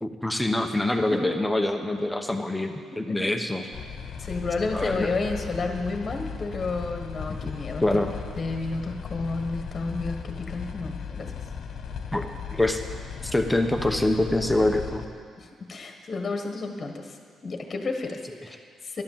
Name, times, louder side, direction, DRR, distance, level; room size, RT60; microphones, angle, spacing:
voice 1, 0.0-3.7 4.7-5.1 7.4-7.5 7.8-8.1 12.1-12.8 13.2-15.0, left 1 dB, 5° left, 4 dB, 1.1 m, -25 dB
sound 1, 3.7-15.1, left 7 dB, 65° left, 1.1 m, -37 dB
voice 2, 4.2-7.8 8.4-11.3 15.4-17.2 17.4-19.0, left 3 dB, 35° left, 3 dB, 1.5 m, -31 dB
11.5 x 11.5 x 7.4 m, 2.1 s
cardioid pair, 90°, 0 cm